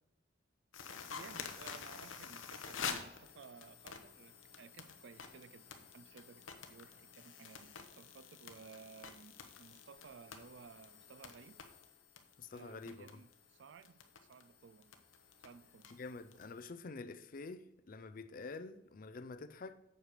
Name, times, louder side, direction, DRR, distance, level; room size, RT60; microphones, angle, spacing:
sound 1, 0.7-16.7, left 6 dB, 75° left, 0.9 m, -49 dB
voice 1, 1.0-11.6 12.5-14.0 14.3-14.9 15.4-15.9, right 5 dB, 60° right, 0.4 m, -57 dB
voice 2, 12.4-13.1 15.9-19.8, left 3 dB, 45° left, 0.5 m, -47 dB
7.9 x 5.0 x 6.5 m
head